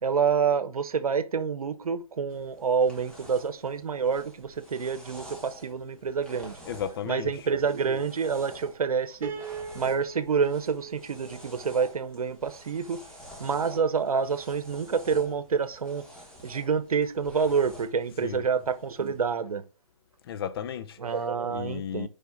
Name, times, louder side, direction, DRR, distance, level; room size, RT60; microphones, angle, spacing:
voice 1, 0.0-6.6 7.0-9.3 9.7-13.0 13.4-16.0 16.4-19.6 21.0-22.1, right 6 dB, 80° right, 1.0 m, -27 dB
sound 1, 2.3-19.3, equal, 5° left, 1.5 m, -49 dB
voice 2, 6.7-7.3 18.2-18.4 20.3-21.0 21.5-22.1, left 9 dB, 40° left, 0.6 m, -34 dB
Piano, 9.2-12.4, right 5 dB, 10° right, 0.7 m, -41 dB
6.9 x 5.1 x 3.8 m
hypercardioid pair, 145°, 19 cm